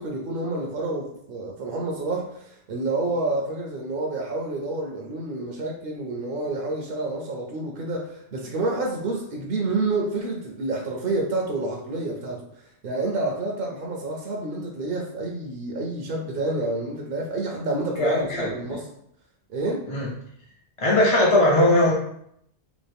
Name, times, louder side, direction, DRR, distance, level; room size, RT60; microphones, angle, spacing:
voice 1, 0.0-12.4 12.8-18.9 19.5-19.9, right 2 dB, 60° right, -1 dB, 0.6 m, -28 dB
voice 2, 18.0-18.4 19.9-20.1 20.8-21.9, left 1 dB, 50° left, -4 dB, 0.3 m, -19 dB
3.0 x 2.4 x 3.3 m, 0.74 s
omnidirectional pair, 1.2 m